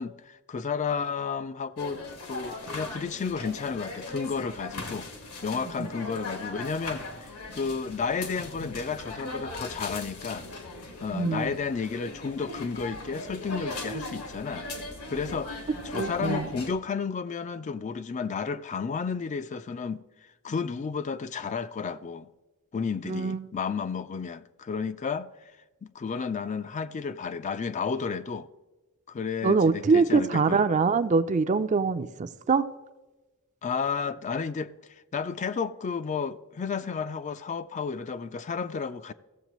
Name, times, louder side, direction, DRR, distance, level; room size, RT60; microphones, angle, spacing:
voice 1, 0.0-2.0 2.3-5.1 5.4-10.5 11.0-14.7 15.1-15.5 15.8-20.0 20.4-22.3 22.7-25.3 25.8-28.5 29.1-30.6 33.6-34.7 35.1-39.1, left 5 dB, 35° left, 0.3 m, -32 dB
sound 1, 1.8-16.7, left 2 dB, 85° left, 1.7 m, -39 dB
voice 2, 11.1-11.5 15.9-16.5 23.0-23.5 29.4-32.7, right 4 dB, 35° right, 0.4 m, -24 dB
15.5 x 7.3 x 3.0 m
head